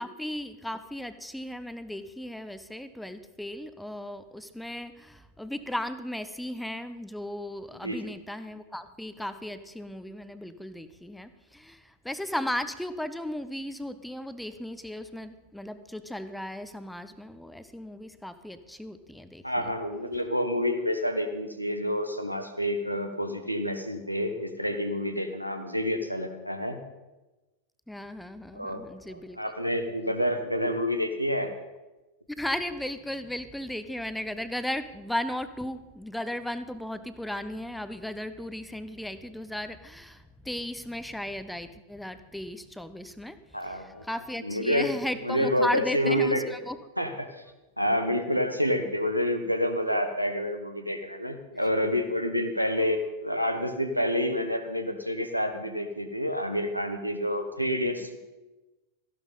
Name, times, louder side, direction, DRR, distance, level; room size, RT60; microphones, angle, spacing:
voice 1, 0.0-19.7 27.9-29.4 32.4-46.8, left 1 dB, 5° left, 11 dB, 0.8 m, -36 dB
voice 2, 19.4-26.8 28.5-28.8 29.1-31.5 43.5-44.0 44.4-45.0 45.2-46.4 47.0-47.3 47.8-58.2, equal, 90° right, 6 dB, 1.3 m, -28 dB
14.5 x 11.5 x 5.4 m, 1.1 s
figure-of-eight pair, 90°, 0 cm